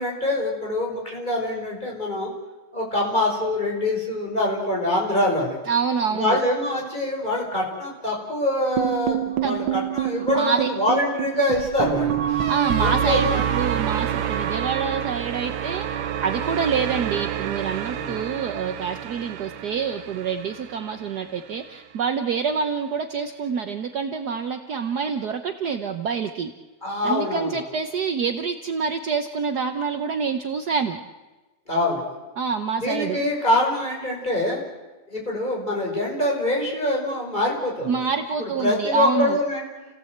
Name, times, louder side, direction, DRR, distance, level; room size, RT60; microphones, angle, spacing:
voice 1, 0.0-2.3 2.7-5.6 6.1-12.5 12.8-13.5 17.9-18.2 26.8-27.6 31.7-32.0 32.8-34.6 35.1-37.9 38.4-39.6, left 1 dB, 20° left, -2 dB, 5.7 m, -24 dB
voice 2, 5.7-6.4 9.4-9.6 10.2-10.7 12.5-26.5 27.0-31.0 32.4-33.2 37.9-39.4, right 6 dB, 60° right, 7 dB, 1.4 m, -26 dB
sound 1, 8.8-21.0, right 10 dB, 75° right, 1.7 m, -27 dB
30.0 x 16.5 x 8.0 m, 1.2 s
omnidirectional pair, 2.2 m